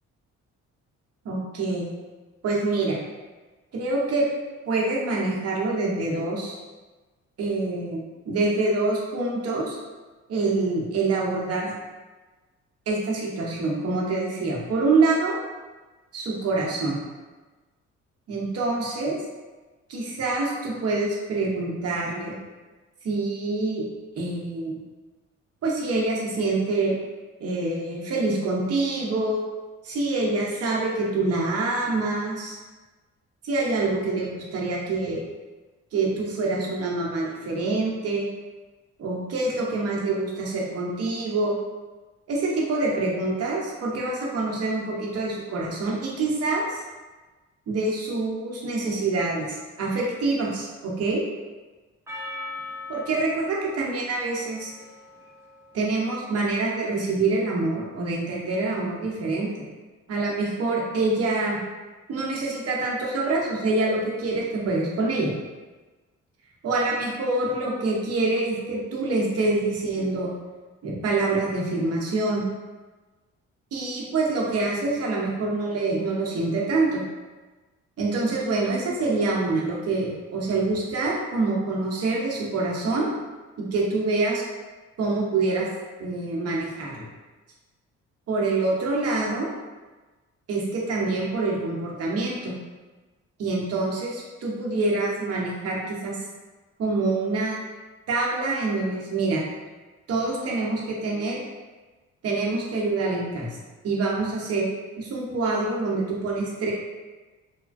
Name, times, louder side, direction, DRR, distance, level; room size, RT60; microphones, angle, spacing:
voice 1, 1.2-1.9 2.4-3.0 3.7-4.3 4.7-6.6 7.4-9.8 10.3-11.7 12.9-15.4 16.1-17.0 18.3-19.2 19.9-22.3 23.0-23.8 24.2-24.8 25.6-26.9 27.4-29.4 29.8-32.6 33.4-35.2 35.9-38.3 39.0-41.6 42.3-46.8 47.7-51.2 52.9-54.7 55.7-59.6 60.1-61.6 62.1-65.3 66.6-70.3 70.8-72.4 73.7-77.0 78.0-83.1 83.6-84.4 85.0-85.7 86.0-87.1 88.3-89.5 90.5-92.5 93.4-96.2 96.8-97.6 98.1-99.4 100.1-101.4 102.2-103.6 103.8-104.7 105.0-106.7, right 3 dB, 55° right, -3 dB, 0.8 m, -26 dB
Percussion, 52.1-56.7, left 2 dB, 10° right, 0.6 m, -41 dB
3.2 x 2.1 x 2.5 m, 1.3 s
cardioid pair, 90°, 30 cm